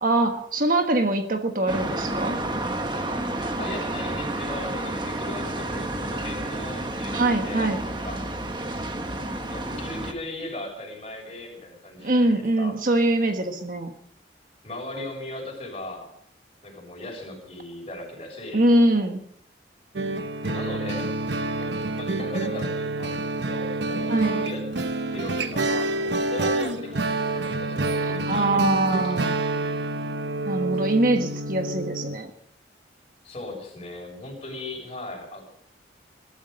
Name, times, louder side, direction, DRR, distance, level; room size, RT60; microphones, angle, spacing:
voice 1, 0.0-2.4 7.1-7.8 12.0-13.9 18.5-19.2 24.1-24.4 28.3-29.4 30.4-32.3, right 1 dB, 50° right, 6 dB, 1.4 m, -23 dB
sound 1, 1.7-10.1, right 1 dB, 25° right, 1.3 m, -30 dB
voice 2, 3.6-7.2 7.4-8.2 9.4-12.7 14.6-16.1 16.6-18.6 20.4-21.1 21.5-24.7 25.1-29.1 33.2-35.5, left 2 dB, 35° left, 0 dB, 6.7 m, -38 dB
sound 2, 20.0-32.2, right 2 dB, 75° right, 1.0 m, -28 dB
21.5 x 12.0 x 5.3 m, 0.67 s
head